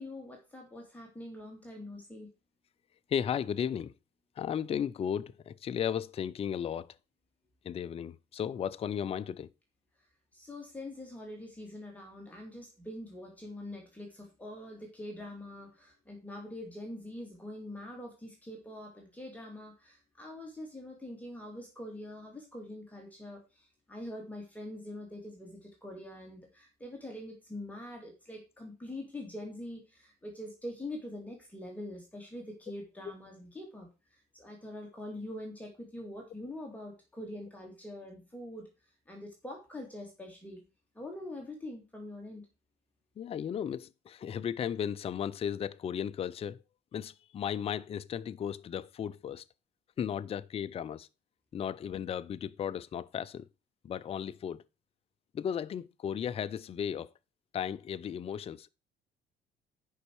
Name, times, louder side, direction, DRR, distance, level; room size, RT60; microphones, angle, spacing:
voice 1, 0.0-2.3 10.3-38.7 39.1-40.6 40.9-42.4, left 1 dB, 10° left, 2.4 m, -44 dB
voice 2, 3.1-3.9 4.4-6.9 7.6-9.5 43.2-46.6 46.9-49.4 50.0-51.1 51.5-53.5 53.8-54.6 55.3-57.1 57.5-58.7, left 8 dB, 35° left, 0.5 m, -35 dB
9.9 x 5.4 x 4.7 m
cardioid pair, 110°, 17 cm